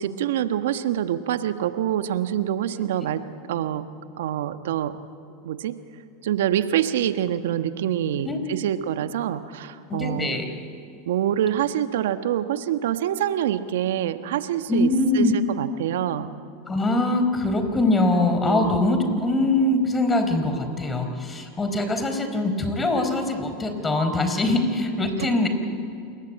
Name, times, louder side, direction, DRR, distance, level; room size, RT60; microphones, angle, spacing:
voice 1, 0.0-3.8 4.2-5.0 5.4-5.7 6.2-10.4 11.0-16.3 18.4-18.8 25.2-25.3, right 10 dB, 75° right, 10 dB, 1.3 m, -26 dB
voice 2, 9.9-10.5 14.7-15.3 16.7-25.5, left 2 dB, 20° left, 7 dB, 4.4 m, -23 dB
28.0 x 21.5 x 8.8 m, 2.5 s
hypercardioid pair, 100°, 0 cm